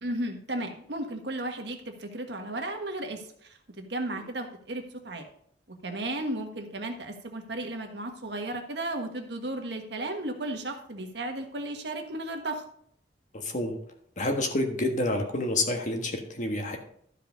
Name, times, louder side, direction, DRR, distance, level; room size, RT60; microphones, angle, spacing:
voice 1, 0.0-5.3 5.8-12.6, right 1 dB, 65° right, 4 dB, 1.5 m, -34 dB
voice 2, 13.3-13.7 14.2-16.8, left 1 dB, 45° left, 4 dB, 1.5 m, -28 dB
12.5 x 5.2 x 5.2 m, 0.66 s
head